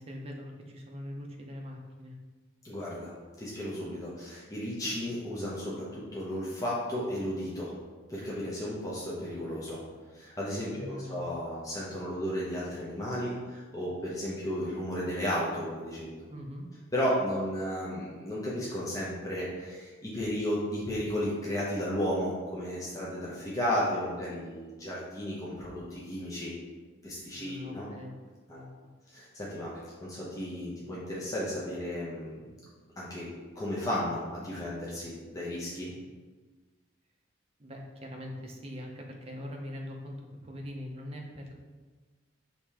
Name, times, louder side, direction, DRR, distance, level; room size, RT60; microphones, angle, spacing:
voice 1, 0.0-2.2 10.7-11.3 16.3-16.7 27.3-28.1 28.5-28.9 37.6-41.5, left 1 dB, 30° right, 1 dB, 0.5 m, -42 dB
voice 2, 2.6-3.1 3.4-7.7 8.1-9.8 10.1-16.1 16.9-26.5 27.0-27.9 28.5-28.6 29.1-32.4 33.0-33.3 33.6-36.0, equal, 15° left, -7 dB, 0.7 m, -34 dB
4.9 x 2.8 x 3.5 m, 1.4 s
head